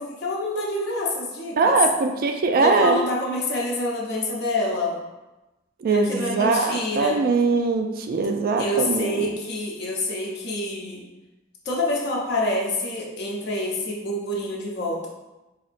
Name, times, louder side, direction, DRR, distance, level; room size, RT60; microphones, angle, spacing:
voice 1, 0.0-1.8 2.6-5.0 5.9-7.2 8.6-11.0 11.6-15.1, left 1 dB, 60° left, -2 dB, 0.8 m, -27 dB
voice 2, 1.6-3.0 5.8-9.3, right 3 dB, 50° right, 5 dB, 0.3 m, -21 dB
4.2 x 2.8 x 2.5 m, 1.1 s
head